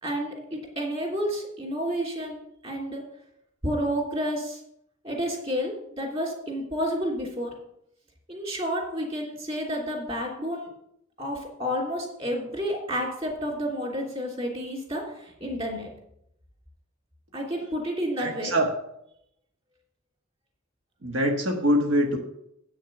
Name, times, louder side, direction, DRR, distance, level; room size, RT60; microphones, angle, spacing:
voice 1, 0.0-3.0 3.6-4.6 5.0-7.5 8.3-10.7 11.2-15.9 17.3-18.5, equal, 30° right, -1 dB, 3.0 m, -30 dB
voice 2, 18.2-18.7 21.0-22.2, equal, 85° right, 1 dB, 1.4 m, -24 dB
8.5 x 6.4 x 6.6 m, 0.76 s
head